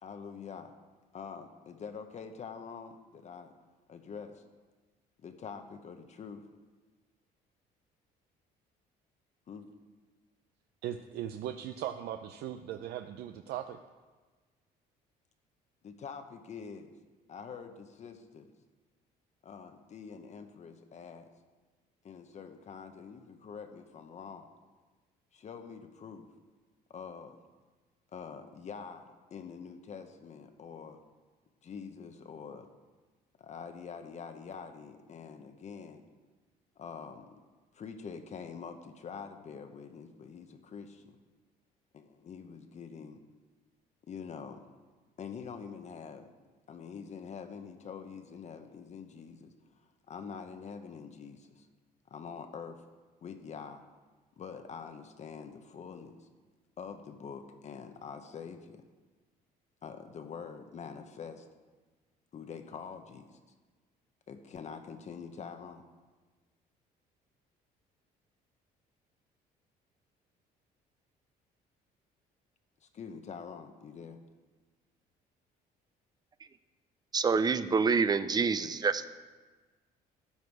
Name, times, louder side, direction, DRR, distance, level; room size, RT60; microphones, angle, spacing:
voice 1, 0.0-0.7 1.1-3.5 3.9-4.4 5.2-6.4 9.5-9.7 15.8-16.9 17.3-18.5 19.4-21.3 22.0-24.5 25.3-26.3 26.9-27.4 28.1-31.0 31.6-32.7 33.4-36.0 36.8-37.3 37.7-41.2 41.9-43.2 44.1-44.6 45.2-46.3 46.7-49.5 50.1-51.7 52.1-52.8 53.2-53.8 54.4-56.3 56.8-58.8 59.8-61.5 62.3-63.4 64.3-65.8 72.8-74.2 78.6-78.7, left 6 dB, 45° left, 7 dB, 0.9 m, -45 dB
voice 2, 10.8-13.8, right 11 dB, 75° right, 8 dB, 0.5 m, -38 dB
voice 3, 77.1-79.1, right 5 dB, 25° right, 13 dB, 0.6 m, -27 dB
12.5 x 8.3 x 4.7 m, 1.3 s
cardioid pair, 110°, 17 cm